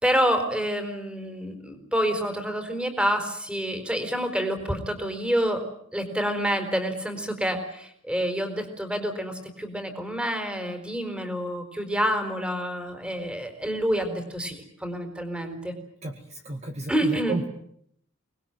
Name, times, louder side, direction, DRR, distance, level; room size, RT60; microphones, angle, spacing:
voice 1, 0.0-5.6 5.9-15.7 16.9-17.4, equal, 5° right, 7 dB, 4.2 m, -28 dB
voice 2, 16.0-17.5, right 2 dB, 35° right, 4 dB, 2.1 m, -32 dB
25.5 x 20.5 x 9.2 m, 0.69 s
head